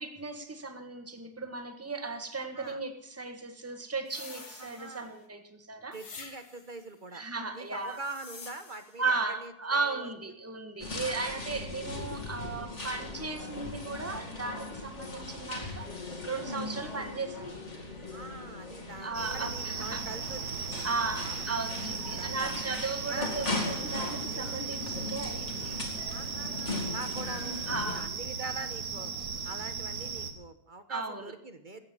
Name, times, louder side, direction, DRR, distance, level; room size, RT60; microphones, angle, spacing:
voice 1, 0.0-6.0 7.1-8.0 9.0-17.5 19.0-20.0 20.8-25.8 27.7-28.1 30.9-31.3, right 3 dB, 10° right, 6 dB, 1.6 m, -36 dB
voice 2, 2.4-2.8 4.4-5.1 5.9-7.2 7.5-10.1 11.0-11.4 18.1-20.8 21.1-21.4 22.1-22.6 23.1-23.4 26.1-27.6 27.8-29.1 29.4-31.8, right 3 dB, 35° right, 10 dB, 1.2 m, -43 dB
sound 1, 4.1-5.3 5.9-6.8 7.8-9.0, left 4 dB, 85° left, 2.5 m, -48 dB
sound 2, 10.8-28.1, left 2 dB, 45° left, 2.8 m, -39 dB
sound 3, 19.1-30.3, right 5 dB, 70° right, 1.9 m, -37 dB
15.5 x 8.8 x 7.3 m, 0.71 s
omnidirectional pair, 1.6 m